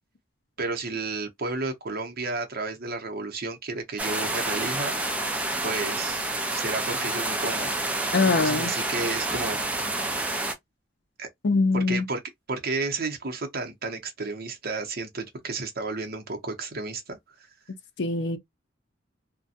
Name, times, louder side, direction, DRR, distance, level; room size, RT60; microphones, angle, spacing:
voice 1, 0.6-4.9 5.6-7.9 8.3-9.6 11.2-11.3 11.7-12.2 12.5-17.5, right 3 dB, 50° right, 0.7 m, -32 dB
sound 1, 4.0-10.5, right 2 dB, 5° right, 0.4 m, -28 dB
voice 2, 8.1-8.7 11.4-12.1 18.0-18.4, left 3 dB, 60° left, 0.5 m, -23 dB
2.5 x 2.2 x 2.6 m
head